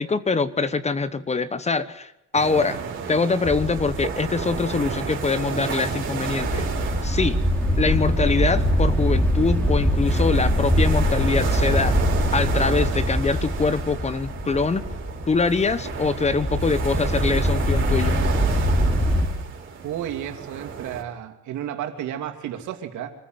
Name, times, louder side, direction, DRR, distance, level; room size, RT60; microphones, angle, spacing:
voice 1, 0.0-2.8 3.1-6.7 7.0-7.4 7.8-12.0 12.3-14.9 15.3-18.2, left 4 dB, 20° left, 14 dB, 1.1 m, -24 dB
sound 1, 2.3-21.0, right 6 dB, 40° right, 4.6 m, -33 dB
sound 2, 3.4-19.3, equal, 5° left, 4.2 m, -23 dB
voice 2, 19.8-23.1, right 10 dB, 75° right, 5 dB, 2.9 m, -32 dB
25.5 x 14.5 x 7.8 m, 0.87 s
cardioid pair, 135°, 30 cm